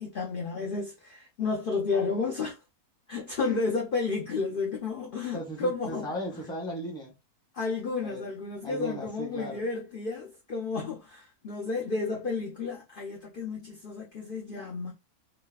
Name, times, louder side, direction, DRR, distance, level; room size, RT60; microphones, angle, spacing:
voice 1, 0.0-2.6 3.1-6.1 7.5-14.9, left 4 dB, 50° left, 0.7 m, -32 dB
voice 2, 5.3-7.1 8.0-8.2 8.6-9.7, equal, 5° left, 0.8 m, -37 dB
4.0 x 2.1 x 2.2 m
omnidirectional pair, 1.6 m